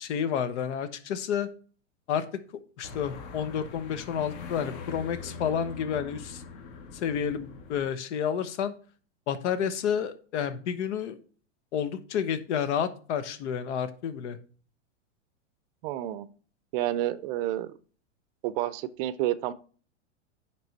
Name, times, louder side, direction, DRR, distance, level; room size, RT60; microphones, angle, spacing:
voice 1, 0.0-1.5 2.1-2.2 2.8-6.4 6.9-8.7 9.3-11.2 11.7-14.4, left 8 dB, 65° left, 12 dB, 1.0 m, -30 dB
sound 1, 2.8-7.9, left 4 dB, 45° left, 1.4 m, -42 dB
voice 2, 15.8-16.3 16.7-17.7 18.4-19.5, right 14 dB, 50° right, 15 dB, 0.6 m, -29 dB
9.9 x 3.3 x 4.1 m, 0.41 s
hypercardioid pair, 120°, 37 cm